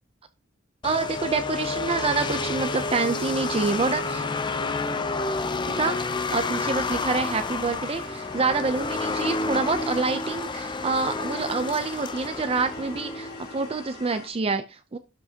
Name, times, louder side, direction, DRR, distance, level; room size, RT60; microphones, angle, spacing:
sound 1, 0.8-13.9, left 3 dB, 25° left, 0.6 m, -30 dB
voice 1, 0.8-4.3 5.7-15.0, right 4 dB, 30° right, 0.5 m, -27 dB
sound 2, 2.1-14.3, left 2 dB, 55° left, 2.7 m, -45 dB
12.0 x 6.0 x 2.8 m
head